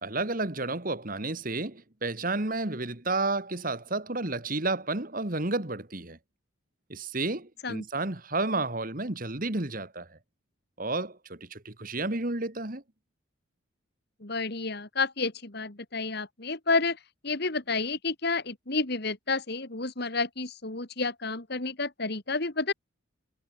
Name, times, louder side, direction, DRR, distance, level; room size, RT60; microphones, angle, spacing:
voice 1, 0.0-6.2 6.9-10.2 10.8-12.8, right 2 dB, 40° right, 2.0 m, -31 dB
voice 2, 14.2-17.0 17.2-22.7, left 3 dB, 50° left, 2.1 m, -30 dB
head